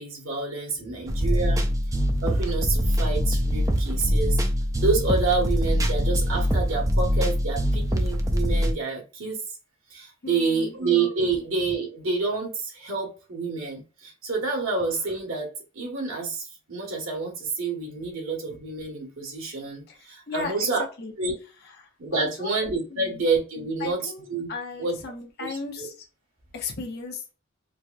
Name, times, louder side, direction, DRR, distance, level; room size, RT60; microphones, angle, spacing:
voice 1, 0.0-1.6 2.2-4.4 4.8-9.4 9.9-20.8 21.2-21.3 22.0-24.5 24.8-25.0 25.5-25.9, right 4 dB, 80° right, 1.6 m, -28 dB
sound 1, 1.1-8.7, equal, 15° right, 0.4 m, -23 dB
voice 2, 10.2-10.8 20.3-20.7 21.0-21.1 21.8-22.5 22.9-23.2 23.8-25.9 26.5-27.2, left 4 dB, 50° left, 0.9 m, -35 dB
4.5 x 2.2 x 2.5 m
head